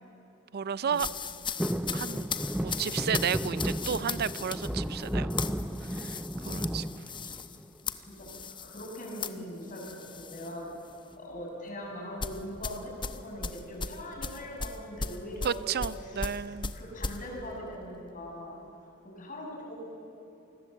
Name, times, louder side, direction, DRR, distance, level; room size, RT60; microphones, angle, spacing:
voice 1, 0.5-1.1 1.9-2.3 2.6-5.3 5.8-6.9 15.4-16.7, right 7 dB, 50° right, 17 dB, 0.5 m, -32 dB
sound 1, 0.9-10.5 10.9-11.1 12.2-17.2, left 5 dB, 25° left, 0.9 m, -37 dB
sound 2, 1.6-7.8 8.2-8.8 10.1-10.5 10.8-10.9 11.1-11.4 12.3-13.2 13.7-13.8, equal, 5° right, 0.6 m, -34 dB
voice 2, 8.1-10.7 11.2-16.4 16.7-19.7, equal, 40° left, -1 dB, 6.9 m, -42 dB
27.5 x 20.5 x 7.8 m, 2.9 s
head